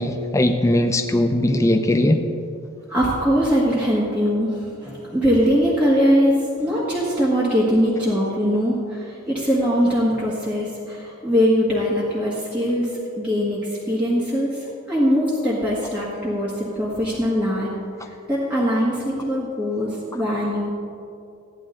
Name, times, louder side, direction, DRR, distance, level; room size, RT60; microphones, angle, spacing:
voice 1, 0.0-2.2, left 1 dB, 15° left, 5 dB, 0.4 m, -19 dB
voice 2, 2.9-4.5 4.8-12.9 13.2-13.6 13.9-14.5 14.9-16.5 16.8-17.7 18.3-20.7, equal, 5° right, -8 dB, 1.5 m, -21 dB
14.5 x 9.9 x 3.8 m, 2.6 s
head